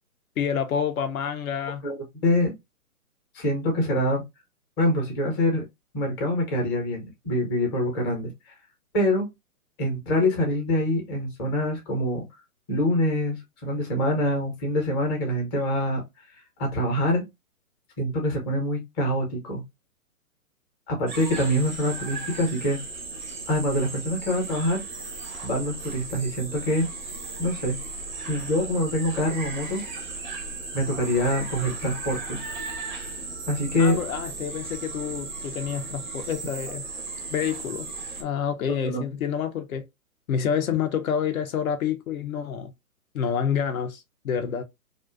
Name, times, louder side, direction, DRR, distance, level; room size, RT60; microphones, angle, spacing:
voice 1, 0.4-1.8 33.8-36.8 37.3-37.9 38.2-39.8 40.3-42.7 43.1-44.6, left 7 dB, 70° left, 0.5 m, -28 dB
voice 2, 2.2-2.5 3.3-4.2 4.8-5.6 5.9-8.5 8.9-9.3 9.8-12.2 12.7-16.0 16.6-17.2 18.0-19.6 20.9-22.8 23.5-24.8 25.4-26.9 27.4-27.8 28.3-29.8 30.7-32.4 33.5-34.0 38.8-39.0, left 1 dB, 20° left, 0.6 m, -25 dB
sound 1, 21.1-38.2, right 3 dB, 35° right, 0.4 m, -36 dB
2.4 x 2.1 x 2.3 m
hypercardioid pair, 140°, 45 cm